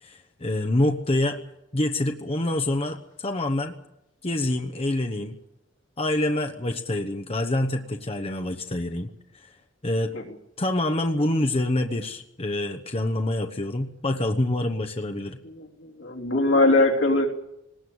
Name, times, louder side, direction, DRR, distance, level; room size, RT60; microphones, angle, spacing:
voice 1, 0.0-1.4 1.7-3.7 4.2-5.4 6.0-9.5 9.8-10.1 10.6-15.4, left 1 dB, 30° left, 5 dB, 1.0 m, -26 dB
voice 2, 15.4-17.3, left 2 dB, 75° left, 1 dB, 3.4 m, -21 dB
19.5 x 19.5 x 8.0 m, 0.87 s
head